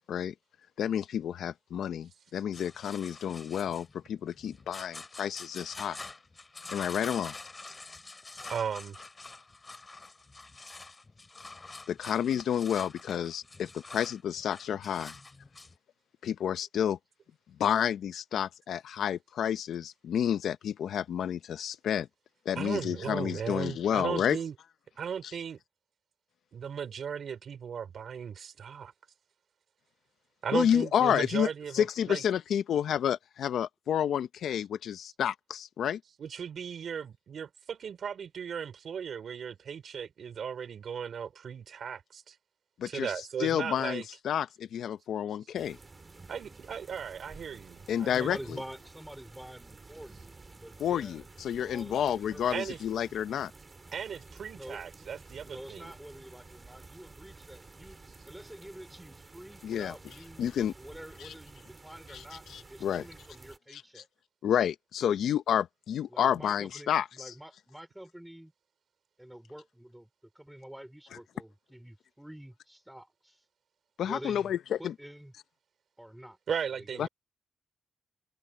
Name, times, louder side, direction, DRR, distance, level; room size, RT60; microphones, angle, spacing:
voice 1, 0.8-6.0 6.7-7.3 11.9-15.1 16.2-17.0 17.6-22.1 22.5-24.4 30.5-31.5 31.7-36.0 42.8-43.1 43.4-45.8 47.9-48.4 50.8-53.5 59.6-59.9 60.4-60.7 61.2-61.3 62.1-62.2 62.5-63.0 63.7-64.0 64.4-67.3 74.0-74.9 77.0-77.1, left 9 dB, 75° left, 0.6 m, -30 dB
sound 1, 2.5-15.8, left 3 dB, 20° left, 3.3 m, -46 dB
voice 2, 8.5-9.0 22.5-24.5 25.0-25.6 26.5-28.9 30.4-32.2 36.2-42.3 42.8-44.1 46.3-48.4 52.5-52.8 53.9-55.9 76.5-77.1, right 7 dB, 55° right, 3.2 m, -37 dB
sound 2, 45.6-63.6, right 3 dB, 25° right, 2.7 m, -52 dB
voice 3, 48.2-51.2 51.6-52.8 54.5-54.9 55.4-58.0 58.3-60.5 60.8-64.1 66.1-68.5 69.2-70.1 70.3-73.4 74.0-75.3 76.0-76.4 76.7-77.1, right 1 dB, 5° right, 3.9 m, -47 dB
wide cardioid pair, 145°, 0 cm